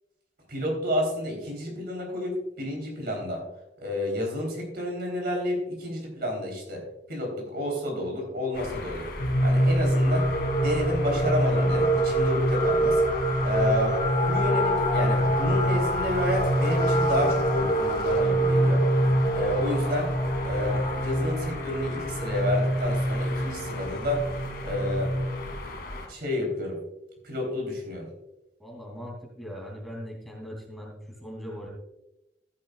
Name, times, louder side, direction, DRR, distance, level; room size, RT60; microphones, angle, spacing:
voice 1, 0.5-3.4 3.8-9.1 9.4-10.3 10.6-13.0 13.4-18.8 19.3-20.1 20.4-24.2 24.6-25.1 26.1-26.8 27.2-28.1, left 1 dB, 60° right, 1 dB, 3.6 m, -30 dB
sound 1, 8.5-26.1, left 2 dB, 60° left, 2.2 m, -38 dB
sound 2, 9.2-25.5, right 1 dB, 40° left, 1.2 m, -25 dB
voice 2, 28.6-31.7, equal, ahead, -2 dB, 2.9 m, -40 dB
14.5 x 10.5 x 2.4 m, 0.93 s
head